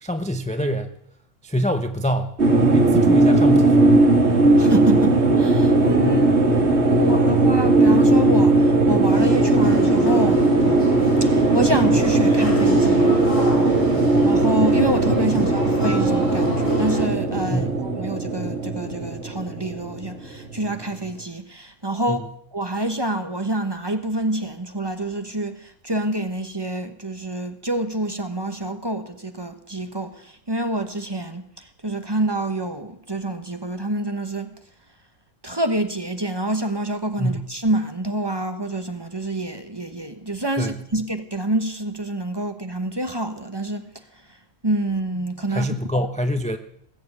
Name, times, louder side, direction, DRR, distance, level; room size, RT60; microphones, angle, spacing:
voice 1, 0.0-0.9 1.4-2.3 2.6-4.0 6.0-6.3 15.3-15.4 17.5-17.8 22.1-22.3 37.2-37.5 40.6-40.8 45.5-46.6, equal, 5° left, 0.6 m, -25 dB
sound 1, 2.4-20.8, right 2 dB, 55° right, 2.2 m, -18 dB
voice 2, 4.6-6.3 6.9-10.4 11.2-13.2 14.2-34.5 35.4-43.9 44.6-45.7 46.0-46.1, right 1 dB, 20° right, 1.1 m, -27 dB
sound 2, 9.1-17.0, left 1 dB, 75° left, 4.8 m, -30 dB
19.0 x 7.7 x 8.4 m
omnidirectional pair, 1.4 m